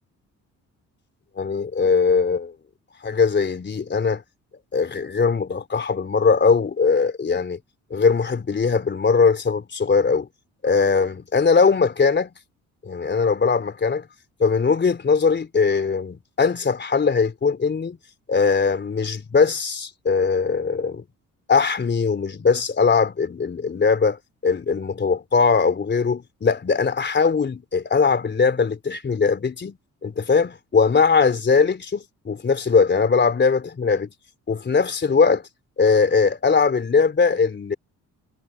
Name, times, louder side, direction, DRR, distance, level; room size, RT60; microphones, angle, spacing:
voice 1, 1.4-2.5 3.0-4.2 4.7-7.6 7.9-10.3 10.6-12.3 12.8-14.1 14.4-18.0 18.3-21.0 21.5-29.8 30.0-34.1 34.5-35.4 35.8-37.7, left 5 dB, 35° left, 3.6 m, -20 dB
cardioid pair, 90°, 30 cm